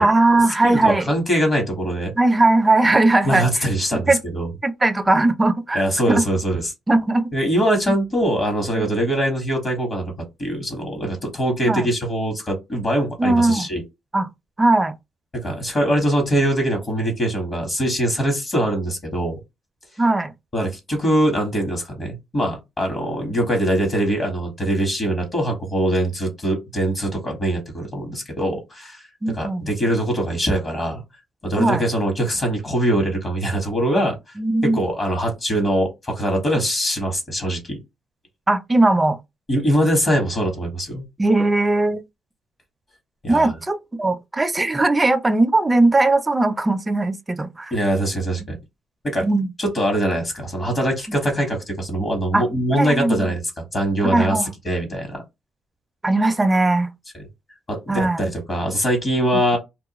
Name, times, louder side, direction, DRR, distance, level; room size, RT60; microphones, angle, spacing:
voice 1, 0.0-1.1 2.2-3.4 4.1-4.2 4.6-5.8 6.1-6.2 6.9-7.3 11.6-11.9 13.2-13.7 14.1-14.3 14.6-14.9 20.0-20.3 29.2-29.7 31.6-31.8 34.4-34.8 38.5-39.2 41.2-42.0 43.3-47.7 49.2-49.5 52.3-52.4 52.7-53.3 54.0-54.5 56.0-56.9 57.9-58.2 59.3-59.4, right 2 dB, 20° right, 0.4 m, -19 dB
voice 2, 0.6-2.1 3.2-4.5 5.7-6.7 7.3-13.8 15.3-19.4 20.5-29.0 29.3-31.0 31.4-34.2 34.6-37.8 39.5-41.0 43.2-43.5 47.7-48.6 49.0-49.3 49.6-54.4 54.6-55.2 57.7-59.6, right 1 dB, 35° left, 1.2 m, -22 dB
2.3 x 2.1 x 2.9 m
cardioid pair, 90°, 0 cm